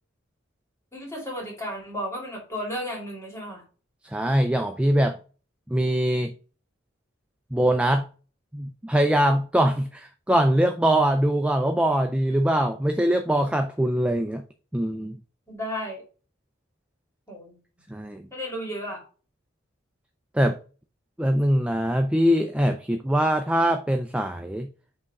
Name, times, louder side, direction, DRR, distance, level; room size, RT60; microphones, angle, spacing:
voice 1, 0.9-3.6 15.5-16.0 17.3-17.5 18.3-19.0, equal, 15° left, 2.4 m, -33 dB
voice 2, 4.1-5.2 5.7-6.3 7.5-8.1 8.5-14.4 14.7-15.2 17.9-18.3 20.3-20.6 21.2-24.7, right 1 dB, 5° right, 0.3 m, -22 dB
5.4 x 3.5 x 5.3 m
head